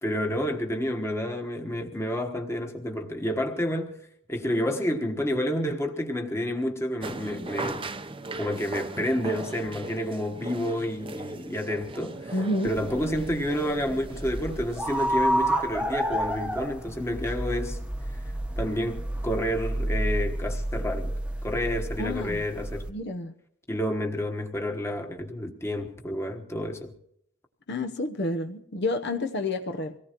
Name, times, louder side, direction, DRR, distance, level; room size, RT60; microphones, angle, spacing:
voice 1, 0.0-4.0 4.3-7.8 8.3-12.3 12.6-17.8 18.6-21.1 21.4-22.9 23.7-26.9, equal, 10° left, 1.3 m, -29 dB
sound 1, 7.0-15.2, right 2 dB, 25° right, 0.7 m, -39 dB
voice 2, 12.3-12.7 22.0-22.4 22.9-23.3 27.7-30.0, left 2 dB, 50° left, 0.9 m, -29 dB
sound 2, 12.7-22.9, right 1 dB, 5° right, 1.0 m, -30 dB
25.0 x 18.0 x 3.0 m
head